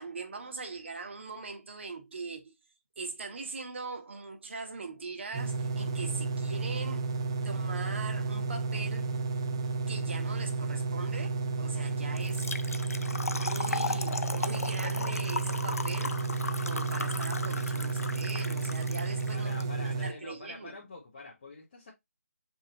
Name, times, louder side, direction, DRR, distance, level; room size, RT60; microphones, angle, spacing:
voice 1, 0.0-2.5 3.0-7.1 7.4-9.2 9.9-12.6 13.1-16.2 16.6-20.8, right 4 dB, 50° right, 1.2 m, -41 dB
sound 1, 5.3-20.1, right 4 dB, 20° right, 0.4 m, -32 dB
Trickle dribble / Fill (with liquid), 12.2-19.6, left 3 dB, 70° left, 0.5 m, -36 dB
voice 2, 19.0-21.9, left 2 dB, 35° left, 1.2 m, -46 dB
5.3 x 2.9 x 2.9 m
figure-of-eight pair, 155°, 8 cm